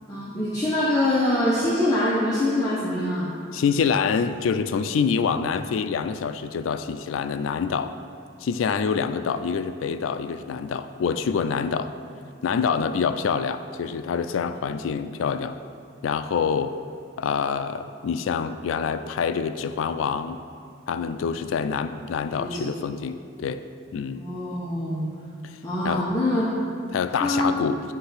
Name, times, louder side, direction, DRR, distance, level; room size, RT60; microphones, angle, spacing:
voice 1, 0.1-3.3 22.4-22.7 24.1-25.1 25.6-26.5 27.1-27.6, left 1 dB, 15° left, -8 dB, 0.9 m, -24 dB
voice 2, 3.5-7.9 8.4-11.9 12.4-15.6 16.0-16.8 17.2-20.4 20.9-23.6 23.9-24.2 25.4-25.6 25.8-26.1 26.9-27.8, left 6 dB, 85° left, 11 dB, 0.3 m, -26 dB
9.7 x 3.3 x 5.7 m, 2.6 s
head